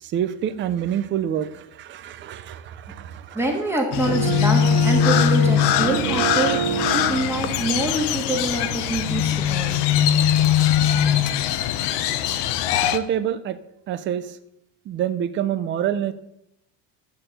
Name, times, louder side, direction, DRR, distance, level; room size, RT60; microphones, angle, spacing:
voice 1, 0.0-3.4 12.9-13.6 13.9-14.4 14.9-16.1, right 10 dB, 30° right, 11 dB, 0.4 m, -27 dB
voice 2, 3.3-6.6 6.9-9.8, right 2 dB, 5° right, 0 dB, 1.4 m, -25 dB
Crow, 3.9-13.0, left 10 dB, 55° left, 0.7 m, -21 dB
sound 1, 4.0-9.4, right 11 dB, 75° right, 0.6 m, -29 dB
12.5 x 4.4 x 7.7 m, 0.81 s
cardioid pair, 175°, 47 cm